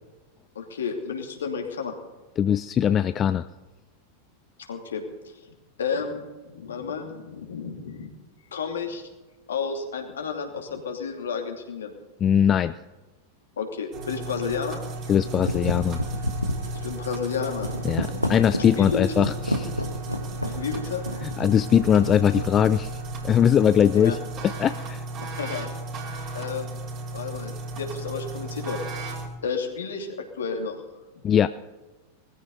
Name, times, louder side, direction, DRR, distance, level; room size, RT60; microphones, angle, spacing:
voice 1, 0.5-1.9 4.6-5.3 5.8-8.1 8.5-9.1 9.5-11.9 13.6-14.8 16.8-17.7 18.8-19.0 20.4-21.3 23.9-24.1 25.4-25.7 26.3-26.8 27.1-28.8 29.4-30.8, left 6 dB, 65° left, 3 dB, 2.8 m, -31 dB
voice 2, 2.4-3.5 12.2-12.7 15.1-16.0 17.8-19.7 21.2-22.9 23.2-24.2 24.4-25.0 31.2-31.5, left 9 dB, 25° left, 13 dB, 0.4 m, -21 dB
sound 1, 13.9-29.3, right 2 dB, 35° right, 3.7 m, -35 dB
sound 2, 15.1-23.5, equal, 90° left, 1.3 m, -31 dB
20.5 x 14.5 x 4.1 m, 1.2 s
figure-of-eight pair, 90°, 0 cm